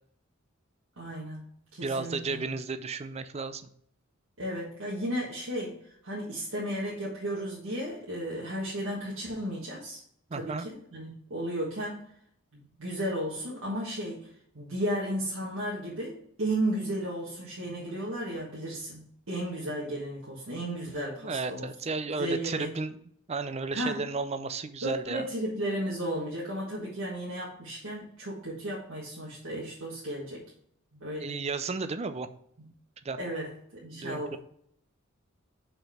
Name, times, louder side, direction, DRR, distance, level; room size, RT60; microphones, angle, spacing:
voice 1, 1.0-1.4 1.7-2.4 4.4-10.0 10.3-12.0 12.5-14.3 14.5-21.7 22.1-22.7 23.7-24.0 24.8-30.4 30.9-31.4 33.2-34.4, right 1 dB, 70° right, -6 dB, 1.5 m, -34 dB
voice 2, 1.8-3.6 10.3-10.7 21.2-23.0 23.3-25.2 31.2-32.3 33.0-33.2 34.0-34.4, right 4 dB, 30° right, 11 dB, 0.4 m, -33 dB
5.5 x 4.6 x 5.7 m, 0.68 s
head